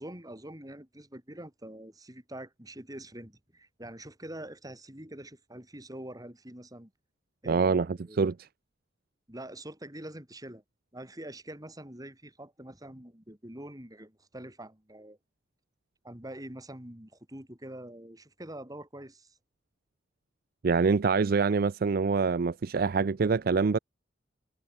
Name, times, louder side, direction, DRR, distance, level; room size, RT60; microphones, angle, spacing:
voice 1, 0.0-6.9 7.4-8.2 9.3-10.6 10.9-15.2 16.0-19.3, right 1 dB, 20° right, 5.2 m, -45 dB
voice 2, 7.5-8.5 20.6-23.8, right 4 dB, 55° right, 0.4 m, -25 dB
head